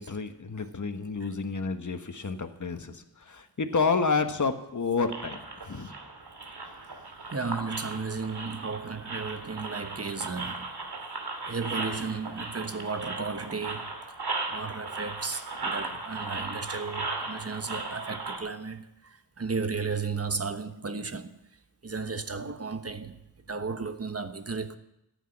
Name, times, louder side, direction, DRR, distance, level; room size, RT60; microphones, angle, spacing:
voice 1, 0.0-5.9, left 4 dB, 50° left, 1.4 m, -30 dB
sound 1, 5.1-18.4, right 3 dB, 80° right, 2.6 m, -37 dB
voice 2, 7.3-10.7 11.5-13.9 14.5-21.4 21.8-23.2 23.5-24.8, right 4 dB, 40° right, 1.2 m, -34 dB
14.0 x 8.4 x 9.7 m
wide cardioid pair, 70°, 39 cm